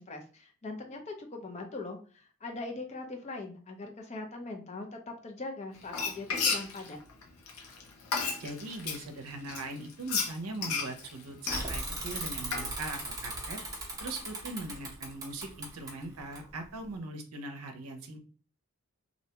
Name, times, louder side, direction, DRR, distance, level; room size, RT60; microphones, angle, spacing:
voice 1, 0.0-7.0, left 3 dB, 30° left, 4 dB, 0.5 m, -41 dB
Frying (food), 5.8-9.0 9.5-12.7, left 5 dB, 85° left, 0.7 m, -33 dB
voice 2, 8.4-13.6 14.0-18.2, right 2 dB, 85° right, 5 dB, 0.6 m, -40 dB
Bicycle / Mechanisms, 11.5-16.9, right 2 dB, 15° right, 0.7 m, -39 dB
2.6 x 2.2 x 2.8 m, 0.39 s
head